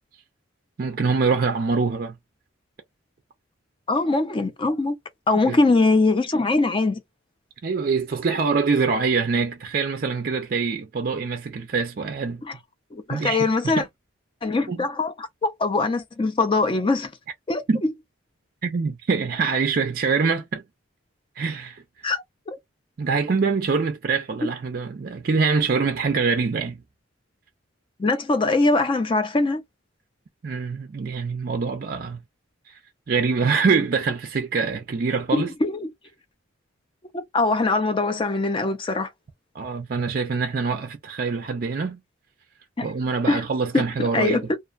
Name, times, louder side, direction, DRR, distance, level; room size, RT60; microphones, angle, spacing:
voice 1, 0.8-2.1 5.5-5.6 7.6-12.4 13.1-13.4 13.6-13.8 14.7-14.8 17.7-17.8 18.6-20.6 21.4-21.8 23.0-26.8 30.4-32.2 32.7-32.8 33.1-35.5 39.5-42.0 42.8-44.4, right 4 dB, 45° right, 0.4 m, -24 dB
voice 2, 3.9-5.0 5.3-7.0 12.5-12.6 12.9-13.8 14.4-17.1 17.5-17.9 22.0-22.6 28.0-29.6 35.3-35.9 37.1-39.1 42.8-42.9 43.3-43.4 43.7-44.6, left 3 dB, 25° left, 0.4 m, -22 dB
2.4 x 2.2 x 2.3 m
head